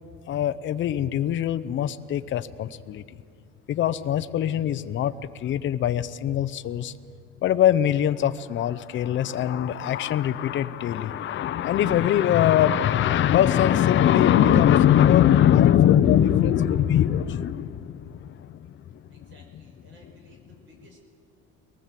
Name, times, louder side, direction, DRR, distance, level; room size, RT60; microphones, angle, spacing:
voice 1, 0.3-3.2 3.7-6.9 7.4-19.0, left 10 dB, 40° left, 11 dB, 0.7 m, -22 dB
voice 2, 19.1-21.0, right 1 dB, 40° right, 2 dB, 5.8 m, -55 dB
23.5 x 19.0 x 7.5 m, 2.2 s
cardioid pair, 150°, 30 cm